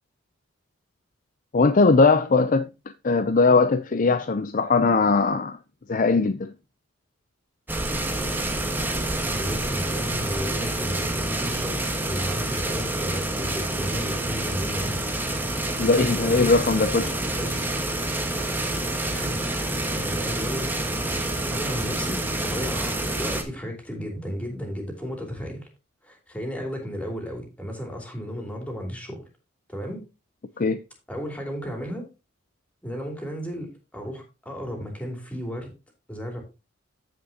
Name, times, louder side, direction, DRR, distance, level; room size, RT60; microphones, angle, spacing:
voice 1, 1.5-2.7 3.0-5.6 5.9-6.5 15.8-17.2 30.6-30.8, left 3 dB, 40° left, 0.5 m, -20 dB
sound 1, 7.7-23.4, right 1 dB, 10° right, 1.2 m, -28 dB
voice 2, 9.3-15.0 16.2-16.6 17.3-17.7 19.1-20.7 21.0-25.7 26.0-29.2 29.7-30.0 31.1-32.0 32.8-35.7 36.1-36.4, equal, 5° left, 2.9 m, -34 dB
14.5 x 5.3 x 2.8 m
head